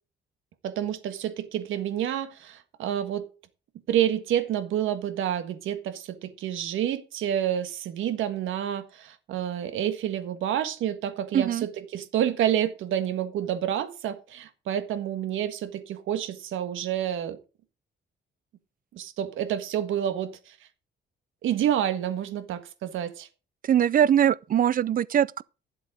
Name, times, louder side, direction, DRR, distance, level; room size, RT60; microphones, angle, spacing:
voice 1, 0.6-3.3 3.9-17.4 18.9-20.5 21.4-23.3, right 10 dB, 80° right, 1.5 m, -29 dB
voice 2, 11.3-11.6 23.6-25.4, right 9 dB, 45° right, 0.5 m, -22 dB
11.5 x 7.7 x 4.9 m
cardioid pair, 90°, 20 cm